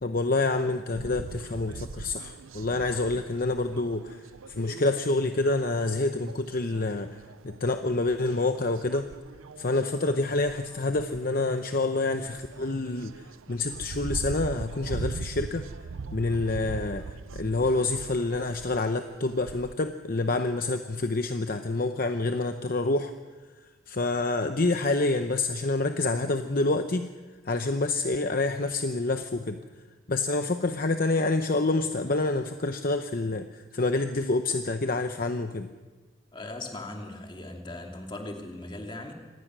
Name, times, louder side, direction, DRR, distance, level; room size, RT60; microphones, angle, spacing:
voice 1, 0.0-7.1 7.4-9.1 9.6-15.7 16.1-23.1 23.9-27.1 27.4-29.6 30.1-35.7, left 2 dB, 45° left, 7 dB, 0.8 m, -27 dB
sound 1, 0.9-19.7, right 4 dB, 85° right, 0.5 m, -41 dB
voice 2, 36.3-39.1, left 2 dB, 25° left, 2 dB, 2.5 m, -39 dB
25.5 x 18.5 x 6.2 m, 1.3 s
head